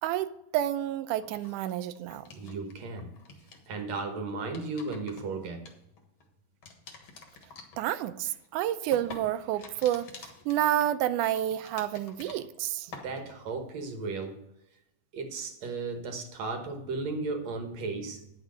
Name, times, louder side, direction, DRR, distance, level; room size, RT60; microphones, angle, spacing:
voice 1, 0.0-2.3 7.8-12.9, right 12 dB, 80° right, 2.0 m, -29 dB
sound 1, 1.2-2.7 3.0-3.7 4.3-6.2 6.6-12.6 12.9-13.5, left 4 dB, 50° left, 1.8 m, -49 dB
voice 2, 2.3-3.1 3.7-5.6 13.0-14.4 15.1-18.2, right 3 dB, 60° right, 2.3 m, -35 dB
10.0 x 6.3 x 6.3 m
omnidirectional pair, 3.6 m